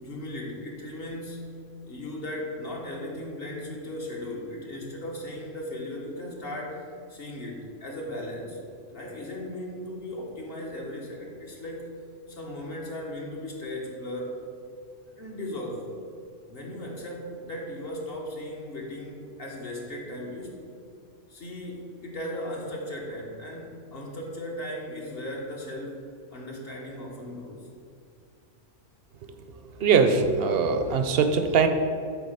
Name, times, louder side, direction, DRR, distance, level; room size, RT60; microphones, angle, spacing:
voice 1, 0.0-1.4 1.8-6.8 7.1-8.6 8.9-11.9 12.3-14.4 15.1-15.8 16.5-20.6 21.3-26.0 26.3-27.7, left 1 dB, 50° left, -1 dB, 1.5 m, -37 dB
voice 2, 29.8-31.7, right 5 dB, 60° right, 8 dB, 0.8 m, -21 dB
8.3 x 3.9 x 6.8 m, 2.4 s
omnidirectional pair, 1.3 m